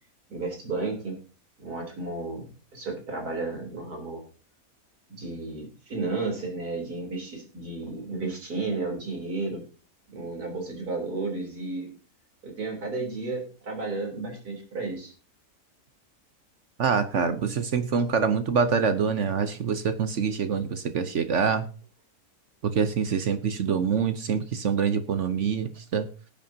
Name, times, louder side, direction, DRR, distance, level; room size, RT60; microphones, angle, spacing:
voice 1, 0.3-1.2 1.6-4.2 5.1-9.6 10.1-11.9 12.4-15.1, right 3 dB, 80° right, 1 dB, 4.0 m, -33 dB
voice 2, 16.8-21.6 22.7-26.1, right 6 dB, 55° right, 10 dB, 1.1 m, -25 dB
19.0 x 8.8 x 2.8 m, 0.37 s
omnidirectional pair, 1.6 m